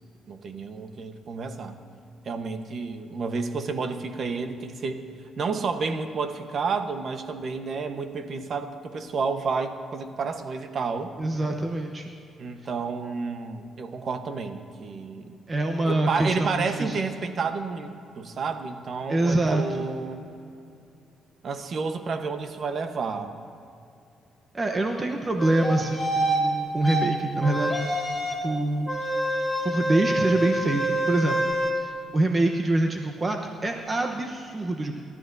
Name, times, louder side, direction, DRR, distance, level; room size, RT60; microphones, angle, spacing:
voice 1, 0.3-1.8 2.2-5.1 5.4-11.1 12.4-15.3 15.8-20.2 21.4-23.3, right 4 dB, 50° right, 7 dB, 1.1 m, -30 dB
voice 2, 11.2-12.1 15.5-17.0 19.1-19.9 24.5-27.8 28.4-28.9 29.6-31.4 31.8-34.9, right 2 dB, 30° right, 3 dB, 1.0 m, -25 dB
sound 1, 25.4-26.4 26.8-27.0 27.4-28.5 28.9-31.7, right 1 dB, 5° right, 2.5 m, -27 dB
27.5 x 12.5 x 2.7 m, 2.6 s
cardioid pair, 95°, 0 cm